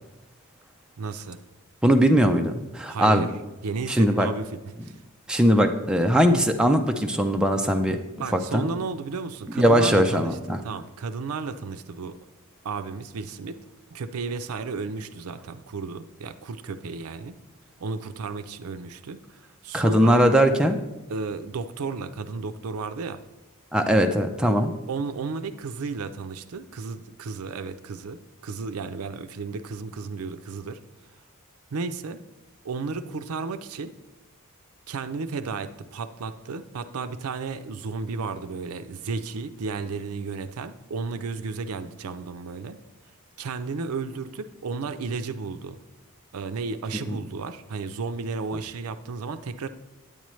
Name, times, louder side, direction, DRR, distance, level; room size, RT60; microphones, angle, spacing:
voice 1, 1.0-1.4 2.9-3.3 3.6-5.0 8.2-12.2 12.6-13.6 13.9-17.4 17.8-20.2 21.1-23.2 24.9-30.8 31.7-32.2 32.6-33.9 34.9-42.8 43.4-45.8 46.3-49.7, right 4 dB, 75° right, 11 dB, 0.5 m, -33 dB
voice 2, 1.8-3.3 3.9-4.3 5.3-8.0 8.3-8.7 9.6-10.6 19.7-20.8 23.7-24.7 47.1-47.2, equal, 5° right, 4 dB, 0.4 m, -20 dB
9.1 x 8.8 x 3.1 m, 1.0 s
head